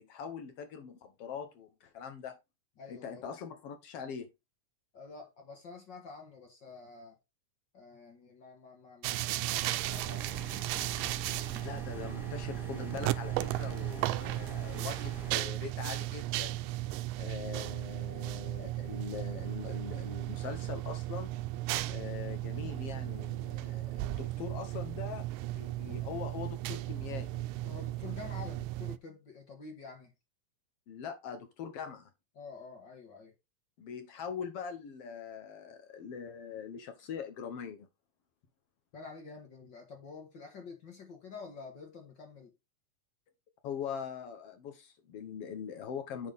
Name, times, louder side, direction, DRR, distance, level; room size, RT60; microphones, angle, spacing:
voice 1, 0.0-2.4 2.9-4.3 11.6-16.7 17.2-21.3 21.9-25.3 25.6-27.4 30.9-32.1 33.8-37.9 43.6-46.3, left 7 dB, 65° left, 1.5 m, -42 dB
voice 2, 2.8-3.2 4.9-7.2 7.7-10.7 27.6-30.1 32.4-33.3 38.9-42.5, left 4 dB, 45° left, 1.8 m, -48 dB
sound 1, 9.0-29.0, right 16 dB, 90° right, 2.2 m, -35 dB
sound 2, 9.8-15.4, right 1 dB, ahead, 1.1 m, -46 dB
7.9 x 6.1 x 3.5 m
omnidirectional pair, 3.7 m